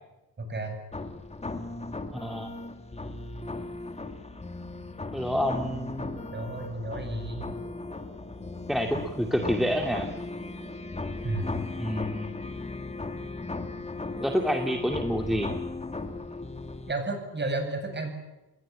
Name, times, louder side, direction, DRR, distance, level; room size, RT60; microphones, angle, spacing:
voice 1, 0.4-0.8 6.3-7.5 11.2-11.6 16.9-18.1, right 2 dB, 25° right, 5 dB, 8.0 m, -32 dB
sound 1, 0.9-16.9, left 3 dB, 15° left, 2.2 m, -37 dB
voice 2, 2.1-2.5 5.1-6.2 8.7-10.1 11.8-12.3 14.2-15.5, equal, ahead, 4 dB, 2.3 m, -28 dB
29.5 x 21.5 x 8.7 m, 1.0 s
cardioid pair, 125°, 42 cm